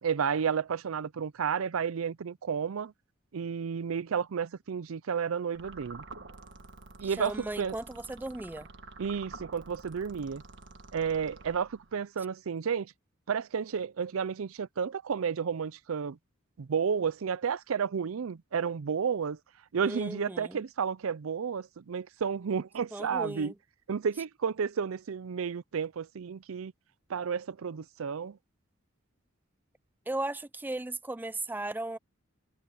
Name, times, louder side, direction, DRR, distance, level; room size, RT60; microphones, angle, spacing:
voice 1, 0.0-2.9 3.3-6.0 7.0-7.8 9.0-10.4 10.9-12.9 13.3-16.2 16.6-19.4 19.7-23.5 23.9-26.7 27.1-28.4, right 6 dB, 85° right, 0.5 m, -32 dB
sound 1, 5.5-12.0, right 3 dB, 60° right, 1.4 m, -49 dB
voice 2, 7.0-8.7 19.8-20.6 22.9-23.5 30.1-32.0, right 2 dB, 10° right, 0.4 m, -36 dB
head